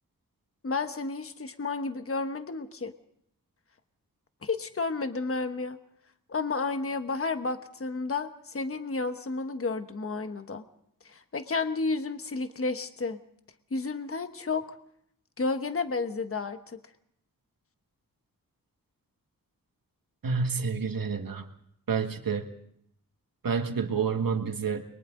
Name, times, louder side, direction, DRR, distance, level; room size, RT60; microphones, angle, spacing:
voice 1, 0.6-2.9 4.4-5.8 6.3-10.6 11.1-13.2 13.7-14.6 15.4-16.8, left 3 dB, 40° left, 9 dB, 1.2 m, -31 dB
voice 2, 20.2-21.5 21.9-22.5 23.4-24.8, right 5 dB, 80° right, 5 dB, 1.9 m, -29 dB
30.0 x 23.0 x 3.8 m, 0.70 s
wide cardioid pair, 90°, 34 cm